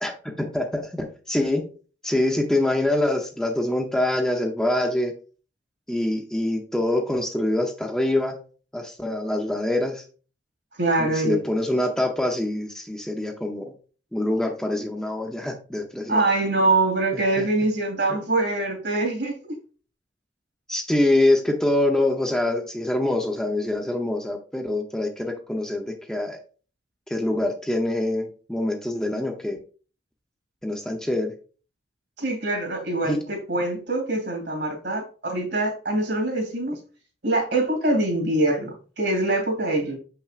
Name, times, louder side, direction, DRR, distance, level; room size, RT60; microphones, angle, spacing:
voice 1, 0.0-1.7 2.0-5.1 5.9-8.4 8.7-10.0 11.0-13.7 14.1-16.2 17.4-17.5 18.1-18.2 20.7-26.4 27.1-29.6 30.6-31.3 33.0-33.2, left 1 dB, 5° left, 2 dB, 0.6 m, -25 dB
voice 2, 10.8-11.4 16.1-19.6 32.2-36.8 37.2-40.0, right 2 dB, 70° right, 3 dB, 2.5 m, -24 dB
6.9 x 5.6 x 2.4 m, 0.39 s
head